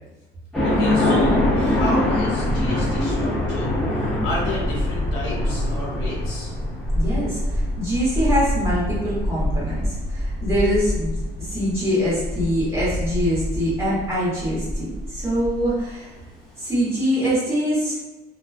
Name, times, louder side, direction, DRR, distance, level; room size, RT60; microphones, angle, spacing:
sound 1, 0.5-15.7, left 1 dB, 5° left, 0.6 m, -24 dB
voice 1, 0.6-6.5, left 2 dB, 75° left, -5 dB, 1.0 m, -31 dB
voice 2, 6.9-11.1 11.4-16.1 16.6-17.9, equal, 15° right, -10 dB, 1.1 m, -24 dB
2.3 x 2.1 x 2.4 m, 1.1 s
cardioid pair, 160°, 18 cm